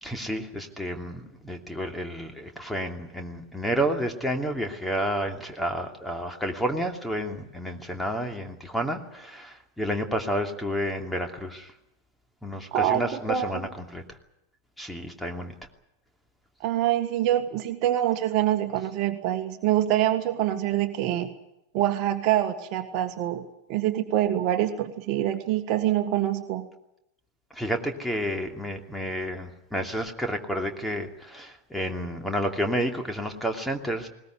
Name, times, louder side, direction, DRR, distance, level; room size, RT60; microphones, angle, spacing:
voice 1, 0.0-11.7 12.4-14.0 14.8-15.5 27.5-34.1, equal, 5° left, 4 dB, 2.8 m, -30 dB
voice 2, 12.7-13.0 13.3-13.5 16.6-21.3 21.7-23.4 23.7-26.7, right 12 dB, 40° right, 7 dB, 1.7 m, -25 dB
20.5 x 19.5 x 9.5 m, 0.85 s
figure-of-eight pair, 90°, 0 cm